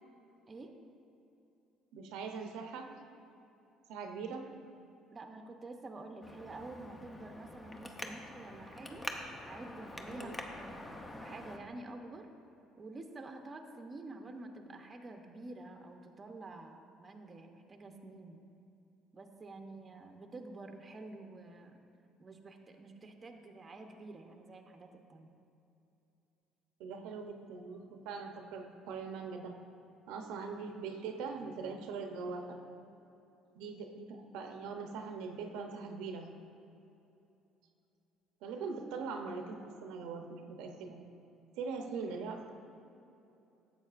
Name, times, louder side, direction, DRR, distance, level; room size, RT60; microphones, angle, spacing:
voice 1, 1.9-2.9 3.9-4.4 10.2-10.4 26.8-29.5 30.1-32.6 33.5-36.3 38.4-41.0 41.6-42.5, right 5 dB, 85° right, 4 dB, 0.7 m, -41 dB
voice 2, 5.1-9.1 9.4-12.3 12.8-18.4 19.1-21.8 22.2-25.4, right 2 dB, 30° right, 4 dB, 0.7 m, -49 dB
Traffic noise roadway noise, 6.2-11.6, left 1 dB, 20° left, 0.7 m, -45 dB
11.0 x 7.5 x 2.5 m, 2.8 s
cardioid pair, 95°, 0 cm